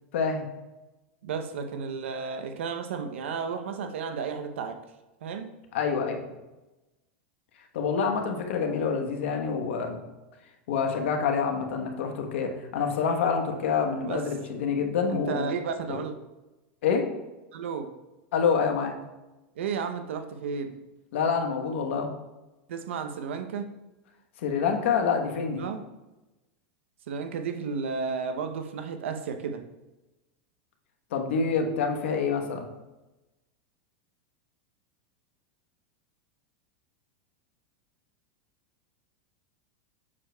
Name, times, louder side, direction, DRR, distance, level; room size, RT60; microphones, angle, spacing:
voice 1, 0.1-0.5 5.7-6.2 7.7-10.0 10.7-15.5 15.9-16.0 16.8-17.1 18.3-18.9 21.1-22.1 24.4-25.6 31.1-32.7, left 6 dB, 75° left, 4 dB, 1.1 m, -27 dB
voice 2, 1.2-4.8 5.2-5.5 14.0-14.3 15.1-16.1 17.5-17.9 19.6-20.8 22.7-23.7 25.6-25.8 27.1-29.6, right 5 dB, 80° right, 8 dB, 0.7 m, -33 dB
7.3 x 6.4 x 2.2 m, 1.0 s
hypercardioid pair, 120°, 6 cm